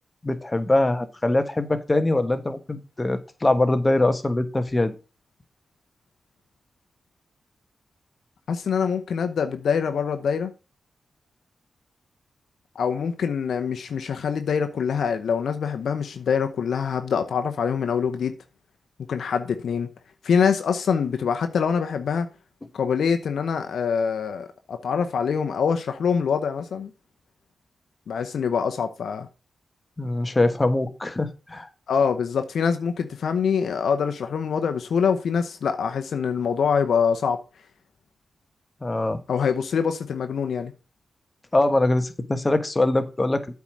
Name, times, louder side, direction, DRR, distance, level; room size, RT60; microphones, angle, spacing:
voice 1, 0.2-4.9 30.0-31.7 38.8-39.2 41.5-43.5, left 2 dB, 25° left, 1.3 m, -23 dB
voice 2, 8.5-10.5 12.7-18.3 19.1-19.9 20.2-22.3 22.7-26.9 28.1-29.3 31.9-37.4 39.3-40.7, left 6 dB, 80° left, 0.8 m, -24 dB
8.3 x 4.8 x 6.1 m
cardioid pair, 60°, 0 cm